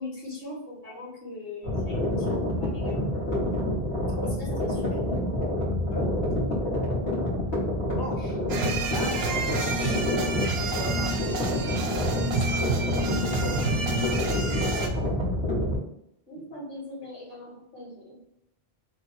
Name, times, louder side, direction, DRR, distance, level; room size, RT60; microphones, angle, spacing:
voice 1, 0.0-3.1 4.2-5.2 8.2-8.3 14.5-14.6 16.3-18.2, left 2 dB, 65° left, -6 dB, 1.8 m, -41 dB
sound 1, 1.6-15.8, left 1 dB, 85° left, 1.7 m, -28 dB
voice 2, 5.9-7.2 8.0-8.4 8.9-10.0 10.4-12.7 13.4-14.9 16.5-16.6, left 1 dB, 30° left, 0 dB, 0.5 m, -40 dB
sound 2, 8.5-14.9, right 3 dB, 80° right, 0.8 m, -29 dB
3.3 x 2.2 x 4.0 m, 0.76 s
omnidirectional pair, 1.1 m